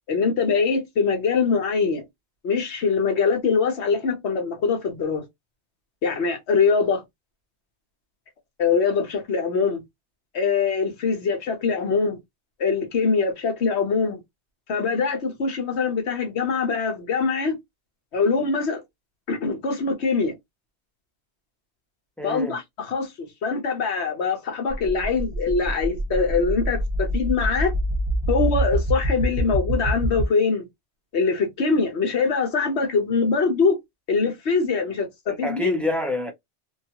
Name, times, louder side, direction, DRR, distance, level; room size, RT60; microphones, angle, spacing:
voice 1, 0.1-2.0 2.4-5.2 6.0-7.0 8.6-9.8 10.3-12.2 12.6-14.2 14.7-17.6 18.1-18.8 19.3-20.4 22.2-27.7 28.3-30.7 31.1-33.8 34.1-35.8, left 5 dB, 70° left, 1.2 m, -23 dB
voice 2, 22.2-22.6 35.3-36.3, left 1 dB, ahead, 0.4 m, -28 dB
sound 1, 24.7-30.3, right 1 dB, 25° right, 0.8 m, -25 dB
2.9 x 2.3 x 2.8 m
omnidirectional pair, 1.2 m